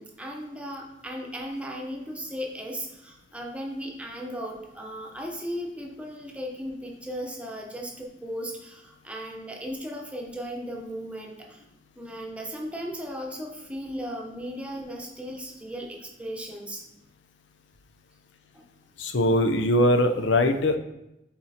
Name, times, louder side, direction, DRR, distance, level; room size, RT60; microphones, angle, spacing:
voice 1, 0.0-11.6 12.0-16.8 18.5-18.6, equal, 5° right, 0 dB, 0.9 m, -36 dB
voice 2, 19.0-20.8, left 1 dB, 75° left, 7 dB, 0.7 m, -21 dB
7.3 x 4.4 x 4.3 m, 0.89 s
head